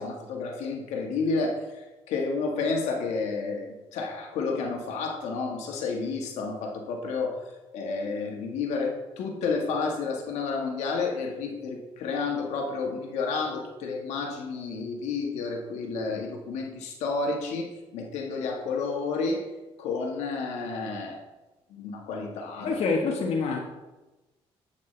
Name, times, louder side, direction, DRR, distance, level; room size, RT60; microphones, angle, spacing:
voice 1, 0.0-7.4 7.7-17.7 17.9-19.4 19.8-21.2 21.7-22.8, left 4 dB, 90° left, 1 dB, 1.7 m, -30 dB
voice 2, 22.6-23.6, left 4 dB, 70° left, 0 dB, 1.3 m, -26 dB
11.0 x 8.7 x 3.4 m, 1.1 s
cardioid pair, 90°, 11 cm